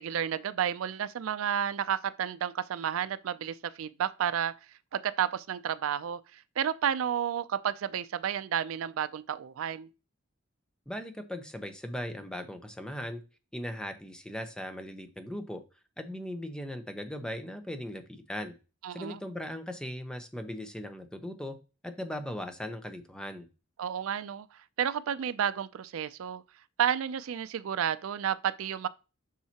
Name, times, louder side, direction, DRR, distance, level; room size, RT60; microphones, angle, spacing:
voice 1, 0.0-4.5 4.9-9.9 18.8-19.2 23.8-26.4 26.8-28.9, right 8 dB, 80° right, 0.4 m, -31 dB
voice 2, 10.9-13.2 13.5-15.6 16.0-18.5 18.9-21.6 21.8-23.5, equal, 5° left, 0.8 m, -38 dB
7.3 x 5.6 x 2.8 m
head